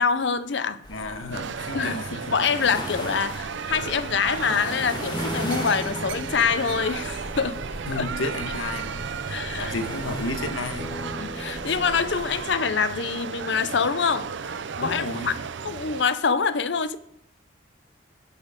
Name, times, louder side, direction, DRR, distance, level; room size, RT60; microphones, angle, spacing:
voice 1, 0.0-0.8 1.7-2.0 2.3-7.6 7.9-8.1 9.3-9.7 11.0-15.4 15.6-17.0, left 5 dB, 60° left, 14 dB, 0.6 m, -25 dB
sound 1, 0.8-12.4, left 1 dB, 20° left, 1.6 m, -39 dB
voice 2, 0.9-2.3 7.9-10.9 14.8-15.4, left 2 dB, 80° left, 7 dB, 1.4 m, -32 dB
sound 2, 1.3-16.0, right 6 dB, 65° right, 0.5 m, -34 dB
sound 3, 5.1-10.3 10.8-12.1, equal, 5° left, 0.6 m, -40 dB
17.5 x 7.4 x 5.1 m, 0.76 s
head